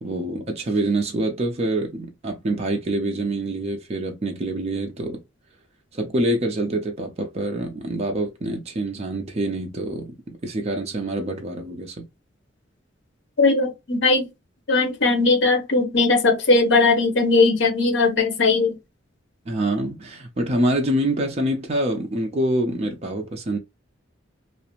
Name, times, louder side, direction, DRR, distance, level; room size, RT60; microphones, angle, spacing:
voice 1, 0.0-5.2 5.9-10.1 10.4-12.1 19.5-23.6, right 1 dB, 35° right, 0.5 m, -26 dB
voice 2, 13.4-14.3 14.7-18.8, left 3 dB, 65° left, 0.7 m, -19 dB
2.4 x 2.1 x 2.9 m
head